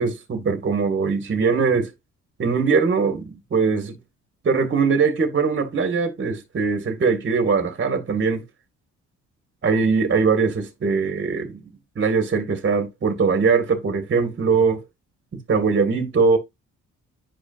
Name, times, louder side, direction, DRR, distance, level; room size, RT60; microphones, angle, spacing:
voice 1, 0.0-1.9 2.4-4.0 4.4-8.4 9.6-11.6 12.0-14.8 15.5-16.4, right 5 dB, 40° right, 2.1 m, -21 dB
10.0 x 5.1 x 2.6 m
cardioid pair, 90°, 30 cm